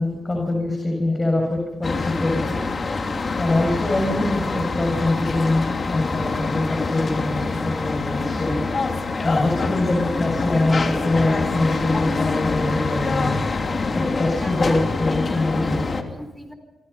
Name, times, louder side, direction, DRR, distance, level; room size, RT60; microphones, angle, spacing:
voice 1, 0.0-2.6 3.4-13.4 13.8-15.8, left 2 dB, 30° left, 1 dB, 6.9 m, -24 dB
sound 1, 1.8-16.0, left 3 dB, 45° left, 2.8 m, -25 dB
voice 2, 3.1-3.7 6.0-6.1 14.4-14.8 15.1-16.5, equal, ahead, 8 dB, 4.1 m, -39 dB
27.0 x 25.5 x 5.7 m, 1.0 s
hypercardioid pair, 40°, 0 cm